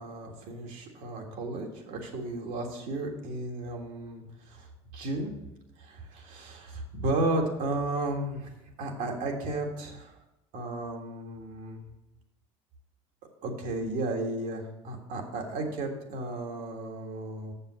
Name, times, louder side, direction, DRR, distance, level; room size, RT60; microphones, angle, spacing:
voice 1, 0.0-4.7 4.9-5.3 5.8-8.5 8.8-10.1 10.5-11.8 13.4-17.5, right 2 dB, 65° right, 2 dB, 1.7 m, -33 dB
7.0 x 5.6 x 6.3 m, 0.93 s
hypercardioid pair, 80°, 15 cm